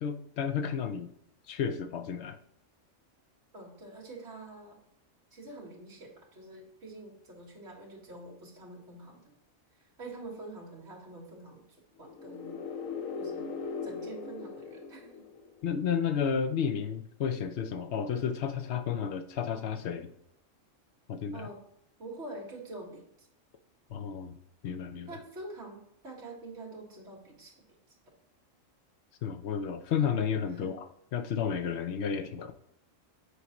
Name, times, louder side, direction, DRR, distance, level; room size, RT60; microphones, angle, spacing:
voice 1, 0.0-1.1 1.5-2.4 15.6-20.1 21.1-21.5 23.9-24.3 24.6-25.1 29.2-32.5, left 7 dB, 65° left, 9 dB, 0.8 m, -32 dB
voice 2, 3.5-4.8 5.3-9.3 10.0-11.7 12.0-12.5 13.2-13.5 13.8-15.1 21.3-21.6 22.0-23.3 25.1-27.5 30.6-30.7, right 2 dB, 55° right, -3 dB, 2.1 m, -46 dB
sound 1, 12.0-15.8, left 5 dB, 85° left, 1.2 m, -39 dB
8.2 x 4.7 x 3.0 m, 0.76 s
omnidirectional pair, 1.3 m